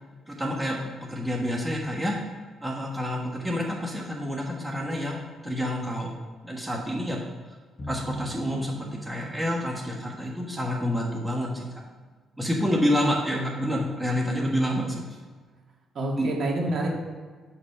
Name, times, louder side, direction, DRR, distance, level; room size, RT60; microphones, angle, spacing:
voice 1, 0.3-2.2 2.6-7.2 7.9-11.7 12.4-15.0 16.2-16.3, equal, 10° right, -2 dB, 1.4 m, -28 dB
sound 1, 7.8-11.5, right 1 dB, 35° left, 1.2 m, -41 dB
voice 2, 15.9-16.9, right 2 dB, 55° right, -1 dB, 2.2 m, -28 dB
8.4 x 4.1 x 5.6 m, 1.5 s
cardioid pair, 90°, 0 cm